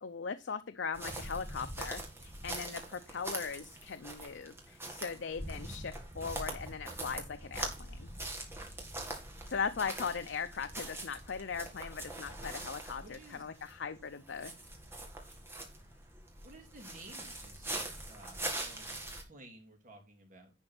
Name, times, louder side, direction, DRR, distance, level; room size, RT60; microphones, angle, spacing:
voice 1, 0.0-8.1 9.5-14.5, left 5 dB, 80° left, 9 dB, 0.6 m, -39 dB
sound 1, 0.9-19.2, right 2 dB, 15° right, 2.1 m, -43 dB
voice 2, 13.0-13.4 16.4-17.7 18.1-20.5, right 1 dB, 45° right, 3 dB, 2.8 m, -54 dB
10.5 x 4.4 x 5.9 m, 0.30 s
head